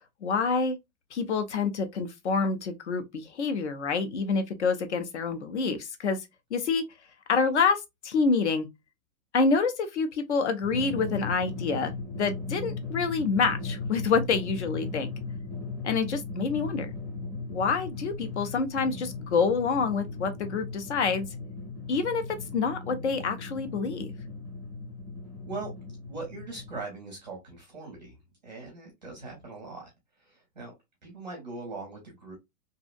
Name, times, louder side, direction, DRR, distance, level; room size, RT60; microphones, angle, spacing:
voice 1, 0.2-0.8 1.1-6.8 7.3-8.7 9.3-15.1 15.8-16.9 17.5-21.3 21.9-22.2 22.5-24.1, left 4 dB, 50° left, 0.5 m, -27 dB
Drum, 10.6-26.8, left 3 dB, 5° left, 0.8 m, -37 dB
voice 2, 26.0-30.7 31.0-32.3, right 3 dB, 30° right, 0.6 m, -41 dB
2.6 x 2.0 x 2.3 m
hypercardioid pair, 170°, 47 cm